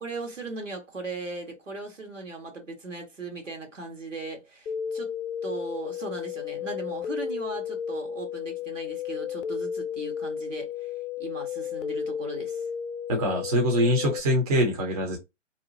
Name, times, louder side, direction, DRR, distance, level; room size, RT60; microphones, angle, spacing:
voice 1, 0.0-5.1 5.4-10.9 11.2-12.6, right 3 dB, 80° right, 1.4 m, -38 dB
sound 1, 4.7-14.2, left 8 dB, 70° left, 0.5 m, -33 dB
voice 2, 13.1-15.2, equal, 30° right, 0.9 m, -24 dB
2.8 x 2.2 x 2.7 m
figure-of-eight pair, 140°, 37 cm